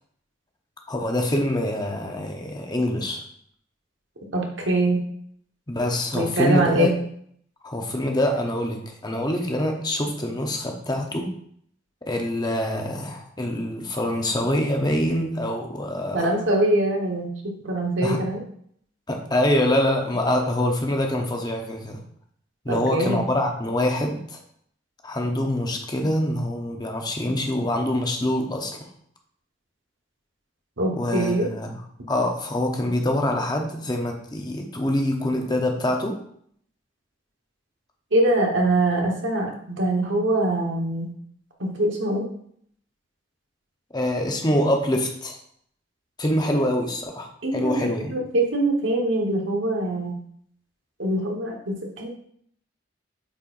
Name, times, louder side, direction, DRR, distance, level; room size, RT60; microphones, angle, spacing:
voice 1, 0.9-3.2 5.7-6.9 7.6-11.3 12.1-16.3 18.0-18.2 19.1-22.0 22.6-24.4 25.0-28.7 30.9-31.8 32.1-36.2 43.9-45.4 46.2-48.2, left 1 dB, 20° left, 2 dB, 0.8 m, -25 dB
voice 2, 4.3-5.0 6.1-6.9 16.1-18.4 22.7-23.3 30.8-31.5 38.1-41.1 41.6-42.3 47.4-50.2 51.0-52.1, right 1 dB, 90° right, 1 dB, 1.3 m, -23 dB
8.5 x 4.4 x 2.6 m, 0.65 s
head